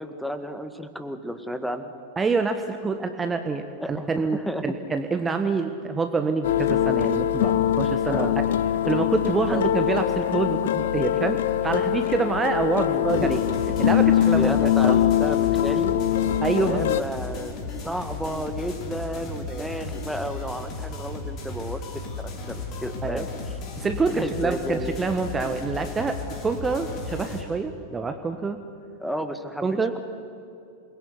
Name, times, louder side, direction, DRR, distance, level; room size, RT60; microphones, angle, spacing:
voice 1, 0.0-1.9 3.8-4.7 8.1-8.3 9.5-9.7 12.9-13.6 14.3-15.9 16.6-21.8 22.2-23.3 24.1-25.0 29.0-29.8, equal, ahead, 9 dB, 2.0 m, -32 dB
voice 2, 2.2-8.3 8.9-13.4 13.8-15.0 16.4-17.0 19.5-19.7 23.0-23.2 23.8-28.6 29.6-29.9, right 4 dB, 15° right, 7 dB, 1.5 m, -26 dB
sound 1, 6.4-17.0, left 11 dB, 60° left, 0.9 m, -23 dB
sound 2, 13.1-27.4, left 3 dB, 35° left, 4.2 m, -35 dB
28.0 x 22.0 x 9.6 m, 2.6 s
figure-of-eight pair, 90°, 0 cm